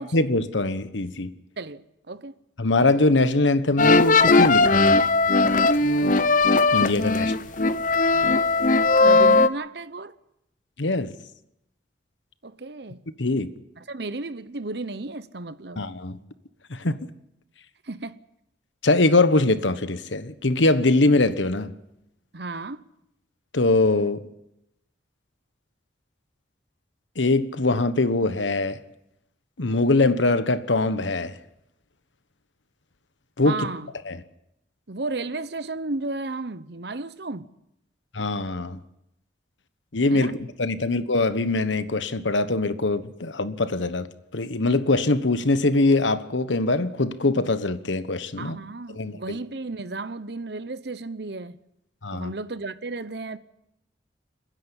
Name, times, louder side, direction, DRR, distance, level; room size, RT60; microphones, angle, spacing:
voice 1, 0.0-1.3 2.6-5.0 6.7-7.3 10.8-11.1 13.2-13.5 15.8-16.2 16.7-17.0 18.8-21.7 23.5-24.2 27.2-28.8 29.6-31.3 33.4-33.5 34.1-34.2 38.1-38.8 39.9-44.1 44.3-48.6 48.9-49.4 52.0-52.3, left 2 dB, 85° left, 1.2 m, -22 dB
voice 2, 1.6-2.4 7.1-7.9 9.0-10.1 12.4-13.0 13.8-15.8 17.8-18.2 22.3-22.8 33.4-33.9 34.9-37.5 40.1-40.3 48.3-51.6 52.1-53.4, right 3 dB, 65° right, 1.0 m, -34 dB
sound 1, 3.8-9.5, left 3 dB, 45° left, 0.7 m, -18 dB
29.5 x 10.5 x 9.8 m
head